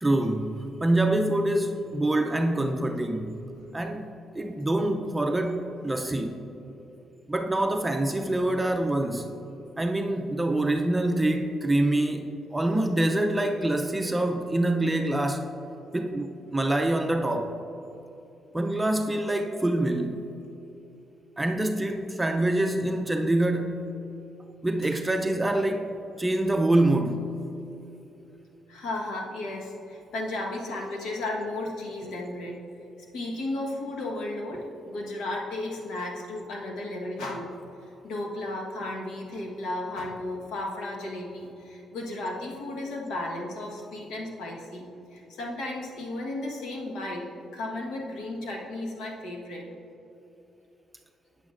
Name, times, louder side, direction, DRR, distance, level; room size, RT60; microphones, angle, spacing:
voice 1, 0.0-3.4 3.7-4.1 4.3-6.4 7.3-9.3 9.8-15.4 15.9-17.5 18.5-20.3 21.4-23.9 24.6-27.3, right 1 dB, 15° right, 4 dB, 0.5 m, -25 dB
voice 2, 28.7-32.6 33.1-37.5 38.0-44.8 45.1-47.3 47.5-49.7, left 2 dB, 85° left, -1 dB, 1.2 m, -34 dB
8.7 x 8.3 x 2.5 m, 2.9 s
cardioid pair, 90°, 0 cm